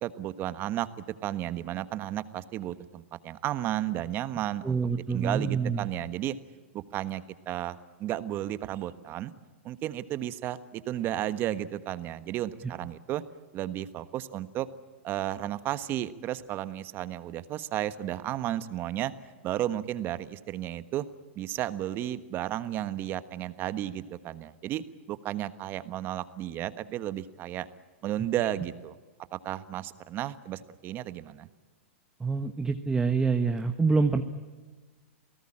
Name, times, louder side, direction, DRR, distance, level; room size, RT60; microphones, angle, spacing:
voice 1, 0.0-0.9 1.2-4.8 5.1-6.3 6.7-9.3 9.6-13.2 13.5-14.7 15.0-19.1 19.4-21.0 21.3-24.8 25.1-27.7 28.0-28.9 29.3-31.5, right 13 dB, 30° right, 13 dB, 1.3 m, -33 dB
voice 2, 4.6-5.9 32.2-34.2, right 4 dB, 10° right, 7 dB, 1.1 m, -26 dB
28.5 x 18.5 x 8.8 m, 1.3 s
hypercardioid pair, 140°, 7 cm